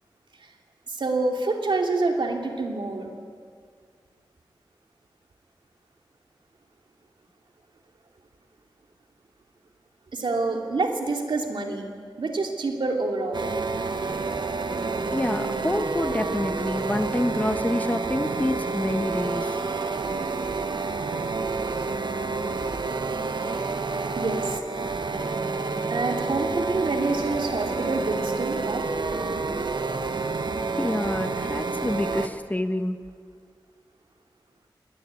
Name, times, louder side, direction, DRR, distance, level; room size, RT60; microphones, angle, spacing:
voice 1, 0.9-3.1 10.1-11.9 12.2-13.5 24.1-24.6 25.9-28.9, right 3 dB, 85° right, 2 dB, 2.8 m, -27 dB
sound 1, 13.3-32.3, right 3 dB, 70° right, 1.3 m, -29 dB
voice 2, 15.1-19.6 30.8-33.0, left 1 dB, 20° left, 8 dB, 1.2 m, -27 dB
19.5 x 19.0 x 9.7 m, 2.1 s
cardioid pair, 50°, 8 cm